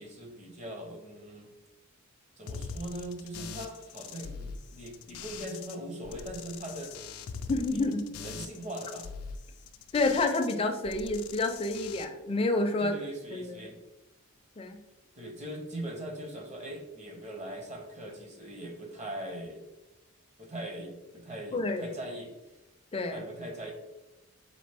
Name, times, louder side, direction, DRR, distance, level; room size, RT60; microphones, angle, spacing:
voice 1, 0.0-1.5 2.4-7.0 7.7-9.1 12.8-13.8 15.1-19.6 20.4-22.3 23.1-23.7, right 1 dB, 30° right, 3 dB, 0.7 m, -41 dB
sound 1, 2.5-5.8 6.0-10.6 10.8-12.1, left 5 dB, 90° left, 0.4 m, -42 dB
voice 2, 7.5-8.0 9.9-12.9 13.3-13.6 14.6-14.8 21.5-21.8 22.9-23.2, left 2 dB, 25° left, 5 dB, 0.4 m, -29 dB
4.2 x 3.0 x 3.4 m, 0.99 s
head